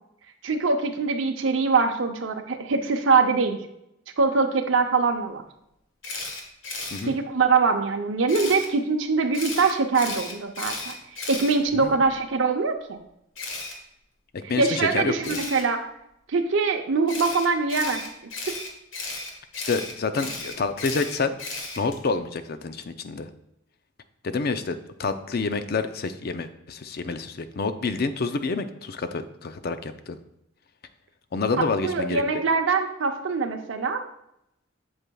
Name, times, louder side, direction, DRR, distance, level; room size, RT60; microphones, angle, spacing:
voice 1, 0.4-3.6 4.2-5.4 7.0-10.9 11.3-13.0 14.6-15.9 16.3-18.0 31.5-34.0, right 4 dB, 80° right, 4 dB, 0.7 m, -23 dB
Camera, 6.0-7.0 8.3-8.7 9.3-12.1 13.4-13.7 15.2-15.6 17.1-22.0, left 3 dB, 90° left, 1.5 m, -34 dB
voice 2, 14.5-15.4 19.7-21.3 21.8-23.3 24.2-30.2 31.3-32.2, left 4 dB, 55° left, 10 dB, 0.5 m, -28 dB
8.0 x 7.3 x 2.3 m, 0.81 s
head